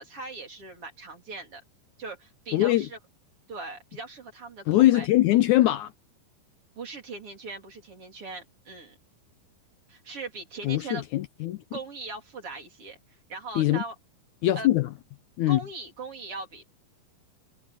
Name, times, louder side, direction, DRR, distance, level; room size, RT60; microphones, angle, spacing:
voice 1, 0.0-1.6 2.0-3.0 3.5-5.1 6.8-8.9 9.9-11.0 11.7-13.0 13.3-13.9 14.6-14.7 15.5-16.7, right 3 dB, 40° right, 4.0 m, -39 dB
voice 2, 2.5-2.9 4.7-5.9 10.6-11.6 13.6-13.8 14.4-14.9 15.4-15.6, left 15 dB, 80° left, 1.7 m, -22 dB
omnidirectional pair, 4.3 m